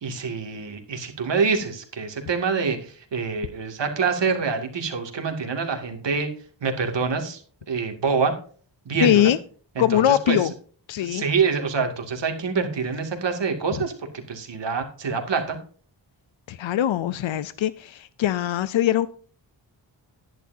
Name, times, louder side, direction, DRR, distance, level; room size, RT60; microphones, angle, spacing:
voice 1, 0.0-6.3 6.6-7.4 7.7-8.3 8.9-9.3 9.8-10.4 11.0-15.6, right 5 dB, 70° right, 4 dB, 2.5 m, -26 dB
voice 2, 9.0-9.4 9.8-10.5 10.9-11.2 16.5-19.1, left 12 dB, 85° left, 16 dB, 0.6 m, -21 dB
11.5 x 10.5 x 2.7 m, 0.43 s
wide cardioid pair, 100°, 45 cm